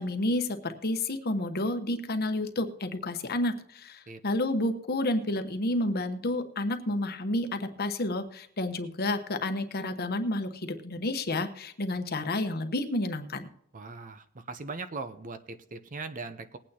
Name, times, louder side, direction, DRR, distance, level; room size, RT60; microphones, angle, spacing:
voice 1, 0.0-13.5, left 1 dB, 45° left, 7 dB, 1.0 m, -30 dB
voice 2, 13.7-16.6, right 3 dB, 40° right, 10 dB, 0.7 m, -39 dB
20.5 x 8.9 x 2.9 m, 0.70 s
head